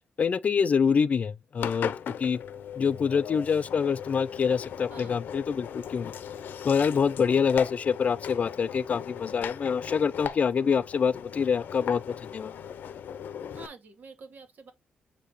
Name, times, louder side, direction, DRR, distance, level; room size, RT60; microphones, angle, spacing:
voice 1, 0.2-2.4 2.8-6.1 6.6-12.5, left 6 dB, 45° left, 0.4 m, -26 dB
Engine, 1.6-13.7, left 8 dB, 75° left, 0.8 m, -38 dB
voice 2, 13.5-14.7, right 4 dB, 60° right, 2.1 m, -47 dB
8.2 x 3.0 x 4.1 m
cardioid pair, 115°, 3 cm